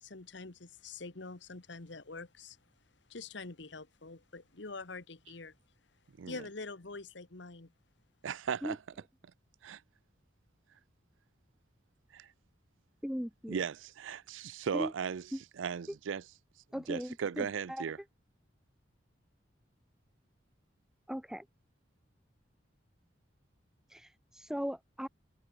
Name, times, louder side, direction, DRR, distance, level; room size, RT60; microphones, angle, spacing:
voice 1, 0.0-2.6 3.1-5.6 6.3-7.7, left 3 dB, 70° left, 1.3 m, -45 dB
voice 2, 8.2-8.8 9.6-9.8 12.1-12.3 13.5-15.2 15.6-16.2 16.7-18.0, right 7 dB, 85° right, 0.4 m, -37 dB
voice 3, 13.0-13.5 14.7-14.9 15.3-15.4 16.7-17.8 21.1-21.4 23.9-25.1, equal, 5° right, 1.0 m, -38 dB
head